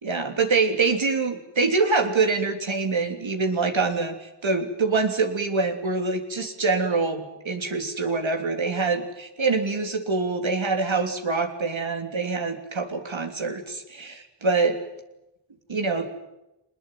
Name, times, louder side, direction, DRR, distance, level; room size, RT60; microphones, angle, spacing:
voice 1, 0.0-14.8 15.7-16.1, right 4 dB, 85° right, 5 dB, 3.3 m, -25 dB
24.5 x 20.5 x 9.2 m, 0.93 s
cardioid pair, 45°, 45 cm